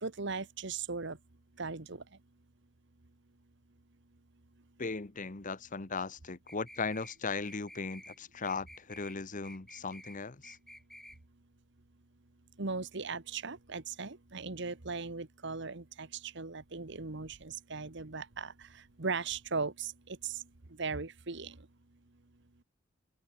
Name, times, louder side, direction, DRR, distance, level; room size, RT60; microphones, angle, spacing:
voice 1, 0.0-1.2 1.6-2.0 12.6-18.5 19.0-19.9 20.2-20.3 20.8-21.6, right 4 dB, 65° right, 1.5 m, -38 dB
voice 2, 4.8-10.6, left 4 dB, 40° left, 1.1 m, -38 dB
sound 1, 6.5-7.2 7.4-8.2 8.4-9.2 9.4-10.2 10.4-11.2, left 1 dB, ahead, 5.2 m, -52 dB
open air
head